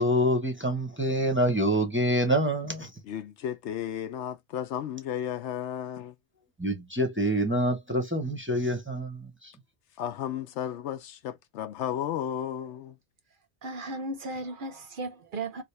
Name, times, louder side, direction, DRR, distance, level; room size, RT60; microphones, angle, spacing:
voice 1, 0.0-3.0 6.6-9.5, equal, 15° right, 0.6 m, -26 dB
voice 2, 3.1-6.1 10.0-13.0, left 10 dB, 75° left, 0.9 m, -33 dB
voice 3, 13.6-15.6, right 2 dB, 55° right, 0.7 m, -35 dB
3.3 x 2.4 x 3.1 m
omnidirectional pair, 1.2 m